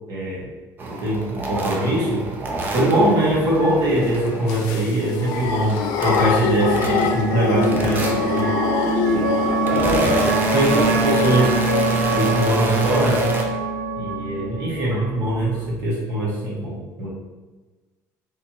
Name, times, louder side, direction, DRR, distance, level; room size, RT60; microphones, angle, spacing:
voice 1, 0.1-0.5 1.0-2.2 2.7-8.5 9.1-9.2 10.0-10.1 10.5-11.6 12.1-13.2 14.0-17.1, right 1 dB, 55° right, -5 dB, 1.3 m, -22 dB
sound 1, 0.8-4.9 5.3-7.3 7.6-8.5 9.2-13.4, right 2 dB, 30° right, 0.5 m, -27 dB
voice 2, 2.7-3.1 9.4-10.9, equal, 10° left, -11 dB, 1.0 m, -24 dB
sound 2, 3.1-10.4 12.0-12.1 12.3-12.6, left 6 dB, 75° left, 0.4 m, -25 dB
sound 3, 5.4-15.7, right 2 dB, 80° right, 0.7 m, -25 dB
3.4 x 2.9 x 2.7 m, 1.2 s
cardioid pair, 145°, 7 cm